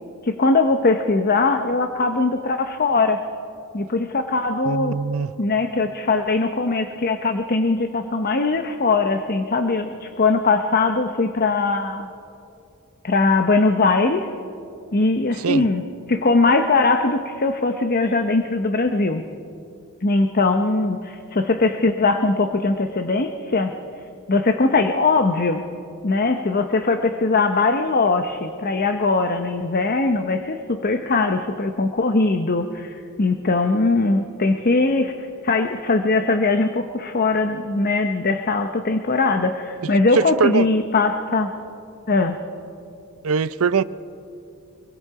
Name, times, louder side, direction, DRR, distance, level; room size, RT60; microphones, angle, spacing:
voice 1, 0.2-3.2 3.7-4.9 5.4-12.1 13.0-14.3 14.9-15.8 16.1-19.2 20.0-23.7 24.3-25.6 26.0-35.1 35.4-41.5 42.1-42.4, left 3 dB, 45° left, 0.8 m, -20 dB
voice 2, 4.7-5.3 15.4-15.6 40.1-40.7 43.2-43.8, right 5 dB, 65° right, 0.5 m, -21 dB
23.5 x 23.5 x 4.8 m
head